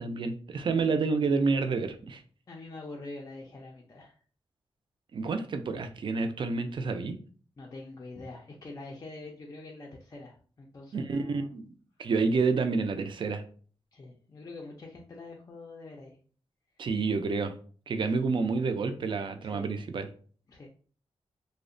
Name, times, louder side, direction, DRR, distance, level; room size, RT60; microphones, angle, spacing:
voice 1, 0.0-2.2 5.1-7.1 10.9-11.7 12.0-13.4 16.8-17.5 17.9-20.1, right 4 dB, 50° right, 7 dB, 0.3 m, -29 dB
voice 2, 2.5-4.2 7.6-11.5 13.9-16.2 19.4-19.7 20.5-20.7, left 2 dB, 35° left, -1 dB, 0.4 m, -45 dB
2.7 x 2.0 x 2.5 m, 0.42 s
wide cardioid pair, 145°, 10 cm